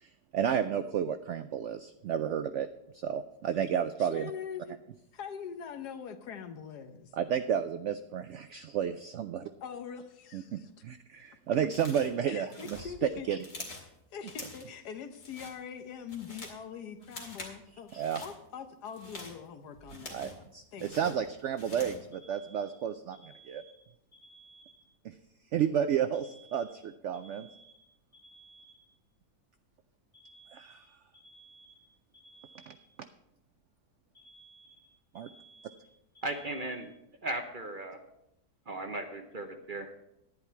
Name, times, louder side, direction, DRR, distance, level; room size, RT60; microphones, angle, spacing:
voice 1, 0.0-2.7 2.9-4.3 7.1-9.5 10.3-12.9 13.3-13.4 17.9-18.2 20.1-23.2 23.5-23.6 25.0-25.1 25.5-27.5 30.5-30.8 32.7-32.8 35.1-35.3, right 8 dB, 75° right, 10 dB, 0.6 m, -32 dB
voice 2, 4.0-4.8 5.1-7.1 9.6-10.7 12.3-13.3 13.7-13.8 14.1-21.1, left 7 dB, 75° left, 8 dB, 1.5 m, -43 dB
sound 1, 11.7-12.2 12.5-13.9 14.3-14.7 15.1-15.6 15.9-16.6 17.0-17.6 17.9-18.3 18.8-20.5 20.8-22.1, left 2 dB, 55° left, 2.6 m, -46 dB
Alarm, 22.1-25.1 26.1-29.1 30.1-33.1 34.1-37.1, right 2 dB, 25° left, 5.1 m, -58 dB
voice 3, 36.2-36.9 37.2-38.0 38.7-40.1, right 2 dB, 40° right, 5 dB, 0.8 m, -37 dB
11.0 x 10.0 x 4.5 m, 0.84 s
omnidirectional pair, 1.7 m